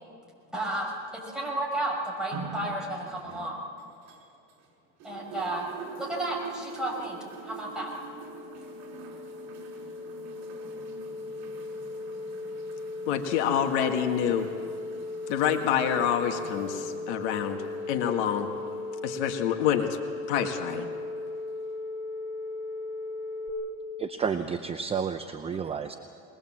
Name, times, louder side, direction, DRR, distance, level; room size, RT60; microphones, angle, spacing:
voice 1, 0.5-0.9 1.2-3.6 5.0-5.7 6.0-7.2 7.4-7.9, right 1 dB, ahead, -3 dB, 5.4 m, -32 dB
sound 1, 2.3-4.7 5.0-19.7 20.6-20.7, right 5 dB, 60° right, 4.9 m, -45 dB
sound 2, 6.5-23.5, left 2 dB, 35° left, 5.0 m, -37 dB
voice 2, 13.1-14.5 15.3-17.6 17.9-18.5 19.0-20.0 20.3-20.9, left 9 dB, 80° left, 5 dB, 1.9 m, -27 dB
voice 3, 24.0-25.9, right 6 dB, 15° right, 8 dB, 0.6 m, -31 dB
21.5 x 21.0 x 7.5 m, 2.3 s
supercardioid pair, 135°, 34 cm